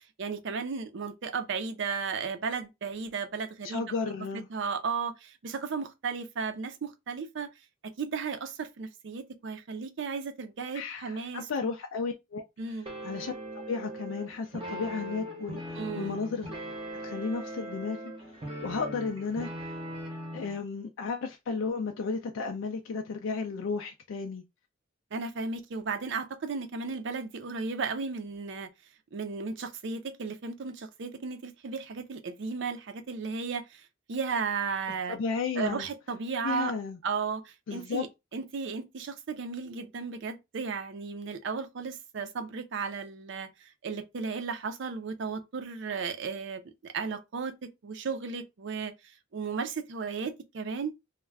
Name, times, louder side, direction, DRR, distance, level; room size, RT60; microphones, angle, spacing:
voice 1, 0.2-3.8 4.3-7.5 7.8-11.5 12.6-12.9 15.8-16.2 25.1-28.7 29.1-33.8 34.1-35.2 35.6-36.7 37.0-38.1 38.3-48.9 49.3-50.9, right 5 dB, 65° right, 0.5 m, -35 dB
voice 2, 3.6-4.5 10.7-13.3 13.7-16.5 17.0-18.0 18.3-19.8 20.3-24.4 35.1-35.9 36.4-37.0 37.7-38.1, left 4 dB, 80° left, 0.4 m, -34 dB
sound 1, 12.8-20.6, right 1 dB, 30° right, 0.7 m, -39 dB
2.3 x 2.1 x 3.2 m
head